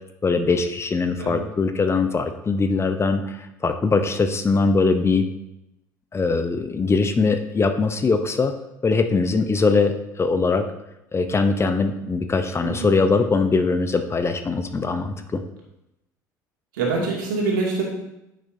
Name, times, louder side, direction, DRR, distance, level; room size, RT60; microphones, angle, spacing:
voice 1, 0.2-5.3 6.1-8.5 8.8-10.6 11.1-15.4, left 4 dB, 25° left, 8 dB, 0.8 m, -21 dB
voice 2, 16.7-17.8, right 3 dB, 80° right, -2 dB, 2.4 m, -25 dB
9.7 x 7.6 x 2.8 m, 0.88 s
hypercardioid pair, 65°, 10 cm